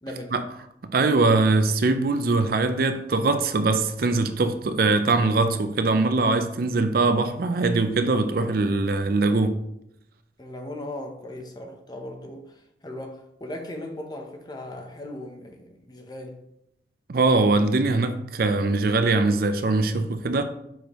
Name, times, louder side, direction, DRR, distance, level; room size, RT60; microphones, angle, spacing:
voice 1, 0.0-0.4 10.4-16.4, left 1 dB, 20° left, 0.7 m, -38 dB
voice 2, 0.9-9.6 17.1-20.4, right 3 dB, 55° right, 0.5 m, -22 dB
6.4 x 5.0 x 3.0 m
head